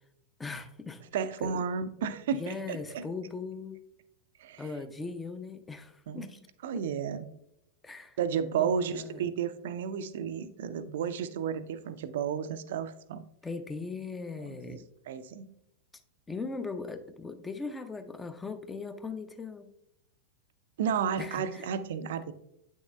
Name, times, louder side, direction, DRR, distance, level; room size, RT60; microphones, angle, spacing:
voice 1, 0.4-1.0 1.4-1.6 2.3-3.8 4.6-6.4 6.8-6.9 7.8-8.2 8.6-9.3 13.4-14.9 16.3-19.7 21.2-21.7, left 4 dB, 10° left, 9 dB, 0.6 m, -39 dB
voice 2, 1.1-3.0 4.4-4.7 6.1-6.3 6.6-7.3 8.2-13.2 14.5-14.8 15.1-15.5 20.8-22.3, right 7 dB, 55° right, 12 dB, 0.4 m, -32 dB
8.5 x 6.3 x 2.2 m, 0.78 s
figure-of-eight pair, 90°, 0 cm